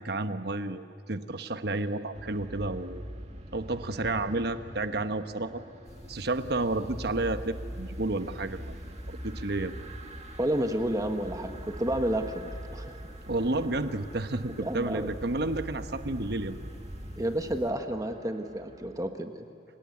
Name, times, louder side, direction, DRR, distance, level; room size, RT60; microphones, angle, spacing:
voice 1, 0.0-3.0 3.5-5.6 6.1-8.6 9.1-9.7 13.3-16.6, right 2 dB, 65° right, 9 dB, 1.1 m, -31 dB
sound 1, 2.1-19.1, right 1 dB, 40° right, 1.8 m, -43 dB
sound 2, 5.9-17.7, equal, 40° left, 1.5 m, -50 dB
voice 2, 10.4-13.0 14.6-15.1 17.2-19.5, right 1 dB, 20° right, 6 dB, 1.3 m, -30 dB
29.0 x 19.5 x 9.6 m, 2.6 s
head